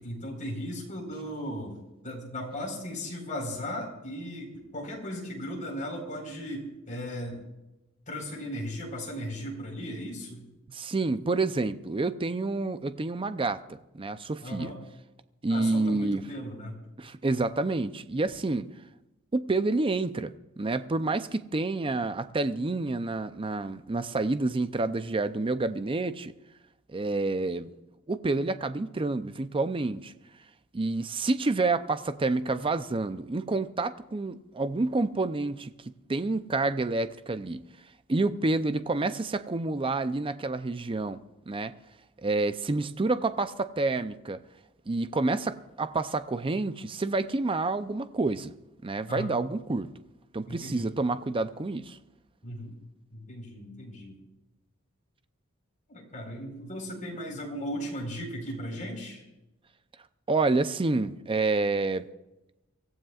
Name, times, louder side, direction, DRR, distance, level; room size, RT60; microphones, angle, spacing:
voice 1, 0.0-1.8 2.0-7.4 8.1-10.4 14.4-14.8 15.5-16.8 49.1-49.4 50.5-50.9 52.4-52.8 53.1-54.2 55.9-59.2, equal, 35° left, 4.5 m, -37 dB
voice 2, 10.7-14.7 15.4-16.2 17.0-18.7 19.3-26.3 26.9-27.7 28.1-30.1 30.7-35.7 36.1-37.6 38.1-41.7 42.2-44.4 44.9-48.5 48.8-49.9 50.3-52.0 60.3-62.1, right 3 dB, 25° right, 0.5 m, -28 dB
24.5 x 15.5 x 2.4 m
head